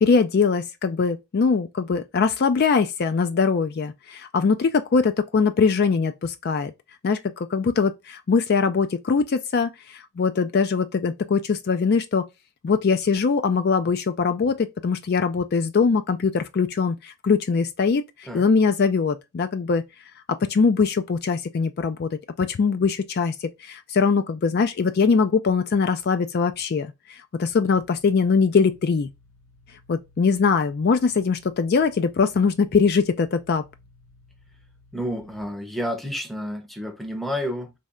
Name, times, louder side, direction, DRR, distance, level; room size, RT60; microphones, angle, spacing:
voice 1, 0.0-6.7 7.0-12.2 12.6-19.8 20.3-29.1 29.9-33.6, left 5 dB, 45° left, 0.3 m, -22 dB
sound 1, 27.7-35.4, left 2 dB, 85° left, 1.4 m, -56 dB
voice 2, 34.9-37.7, equal, ahead, 0.6 m, -30 dB
4.0 x 3.2 x 3.5 m
head